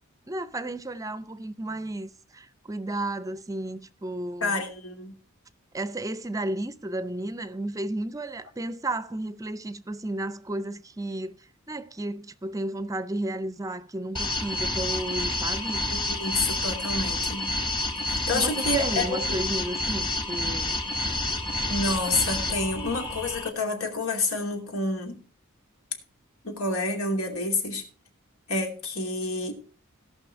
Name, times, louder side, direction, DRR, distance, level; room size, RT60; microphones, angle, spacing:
voice 1, 0.3-4.6 5.7-11.4 11.7-15.8 18.3-20.8, right 1 dB, 15° right, 0.6 m, -33 dB
voice 2, 4.4-5.1 15.9-17.5 18.0-19.4 21.7-25.2 26.4-27.8 28.5-29.5, left 2 dB, 85° left, 2.7 m, -28 dB
sound 1, 14.1-23.5, left 2 dB, 25° left, 1.4 m, -29 dB
17.0 x 5.8 x 4.5 m
head